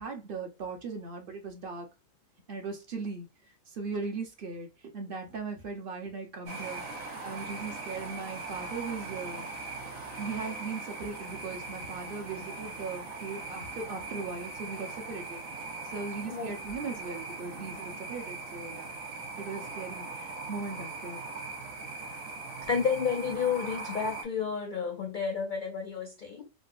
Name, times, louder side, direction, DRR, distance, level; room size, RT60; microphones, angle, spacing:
voice 1, 0.0-1.9 2.5-3.3 3.7-9.5 10.2-15.4 15.9-18.9 19.4-21.2, right 4 dB, 45° right, 0.9 m, -38 dB
sound 1, 6.5-24.2, right 3 dB, 85° right, 1.4 m, -40 dB
voice 2, 22.6-26.5, left 6 dB, 70° left, 0.4 m, -31 dB
3.8 x 2.1 x 2.4 m
omnidirectional pair, 1.4 m